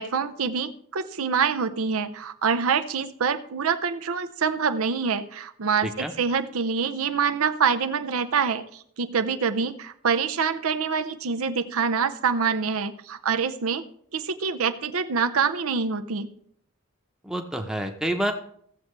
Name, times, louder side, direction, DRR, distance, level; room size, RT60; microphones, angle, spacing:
voice 1, 0.0-13.8 14.1-16.3, right 6 dB, 80° right, 9 dB, 0.6 m, -26 dB
voice 2, 17.2-18.3, right 1 dB, 5° right, 4 dB, 0.8 m, -28 dB
16.0 x 7.2 x 3.2 m, 0.64 s
head